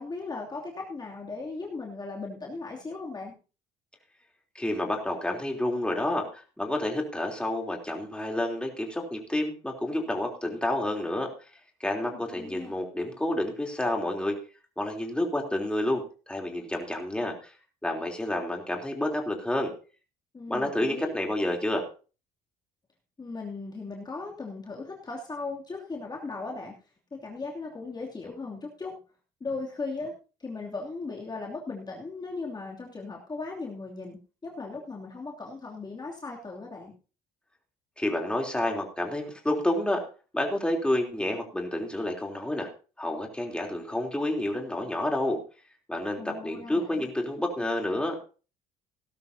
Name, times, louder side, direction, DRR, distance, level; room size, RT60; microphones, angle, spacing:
voice 1, 0.0-3.3 12.1-12.7 20.3-21.2 23.2-26.7 27.1-29.0 29.4-30.1 30.4-36.9 46.2-47.1, left 3 dB, 25° left, -2 dB, 2.8 m, -37 dB
voice 2, 4.6-11.3 11.8-14.4 14.8-17.5 17.8-19.7 20.5-21.9 38.0-40.0 40.3-42.7 43.0-45.4 45.9-48.2, left 1 dB, 5° left, 1 dB, 3.4 m, -29 dB
17.5 x 12.5 x 2.8 m, 0.35 s
cardioid pair, 110°, 17 cm